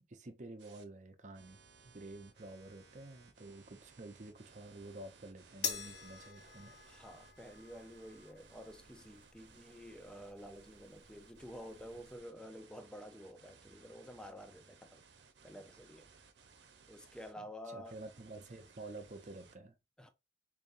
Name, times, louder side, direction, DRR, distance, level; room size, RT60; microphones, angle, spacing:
voice 1, 0.1-6.8 17.4-19.7, right 2 dB, 45° right, 0.7 m, -50 dB
sound 1, 0.6-0.8 1.3-17.3 17.8-19.6, right 5 dB, 90° right, 0.7 m, -62 dB
sound 2, 5.6-12.2, left 7 dB, 85° left, 1.2 m, -47 dB
voice 2, 6.9-15.0 15.4-16.1 16.9-18.0 20.0-20.1, equal, 5° left, 0.5 m, -50 dB
5.1 x 2.7 x 2.6 m
head